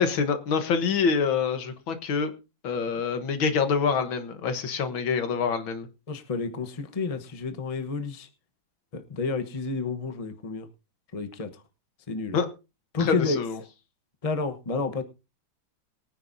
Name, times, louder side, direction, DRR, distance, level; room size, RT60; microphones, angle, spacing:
voice 1, 0.0-2.3 2.6-5.9 12.3-12.5 13.0-13.6, left 5 dB, 85° left, 2.1 m, -26 dB
voice 2, 6.1-8.3 8.9-10.7 11.1-11.5 12.1-12.4 12.9-13.4 14.2-15.0, left 4 dB, 25° left, 0.9 m, -30 dB
22.5 x 9.4 x 2.7 m
omnidirectional pair, 2.1 m